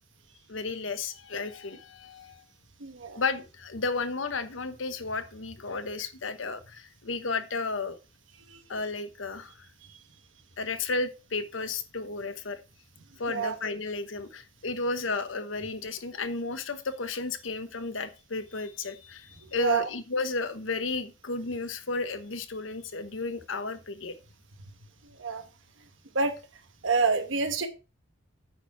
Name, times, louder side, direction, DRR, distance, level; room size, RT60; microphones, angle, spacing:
voice 1, 0.5-2.4 3.1-8.0 8.7-9.7 10.6-12.6 13.2-24.1, left 3 dB, 75° left, 10 dB, 1.0 m, -33 dB
voice 2, 2.8-3.2 8.5-8.6 9.9-10.0 13.3-13.5 19.6-19.9 25.2-25.4 26.1-26.3 26.8-27.7, right 4 dB, 70° right, 8 dB, 1.1 m, -27 dB
8.9 x 4.6 x 5.7 m, 0.31 s
head